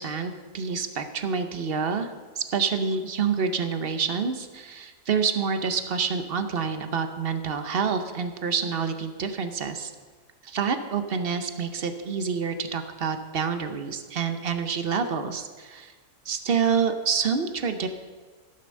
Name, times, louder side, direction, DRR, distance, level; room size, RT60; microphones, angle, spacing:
voice 1, 0.0-2.1 2.4-9.9 10.4-15.9 16.3-17.9, right 6 dB, 50° right, 8 dB, 0.8 m, -27 dB
14.0 x 6.9 x 6.4 m, 1.4 s
omnidirectional pair, 1.7 m